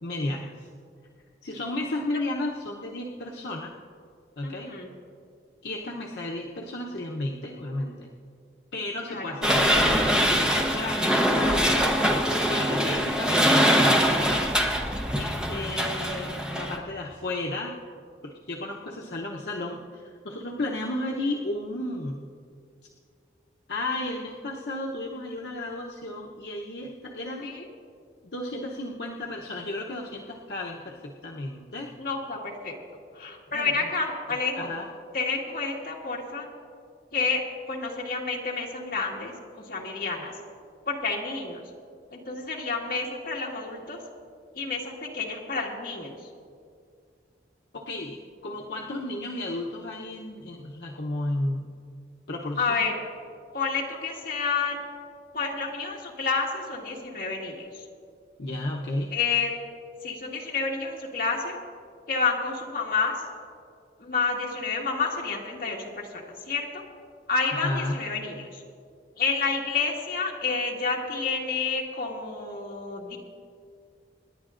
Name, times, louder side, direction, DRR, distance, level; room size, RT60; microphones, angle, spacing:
voice 1, 0.0-0.7 1.4-3.7 4.4-4.7 5.6-8.1 8.7-12.0 12.5-14.4 15.1-17.7 18.2-22.3 23.7-27.5 28.3-31.9 33.5-33.9 34.3-34.9 47.7-51.7 52.3-52.8 58.4-59.1 67.5-68.0, left 2 dB, 70° left, -2 dB, 0.8 m, -33 dB
voice 2, 4.4-4.9 9.0-9.4 27.4-27.7 32.0-32.8 33.1-34.7 35.1-36.5 37.1-37.4 37.7-40.3 40.9-41.6 42.1-44.0 44.6-46.2 52.6-53.0 53.5-54.9 55.3-57.8 59.1-59.5 60.0-61.6 62.1-63.1 64.0-66.8 67.3-68.6 69.2-73.2, left 4 dB, 55° left, -2 dB, 1.8 m, -29 dB
sound 1, 9.4-16.8, equal, 5° right, 0.9 m, -23 dB
27.0 x 10.5 x 2.5 m, 2.2 s
head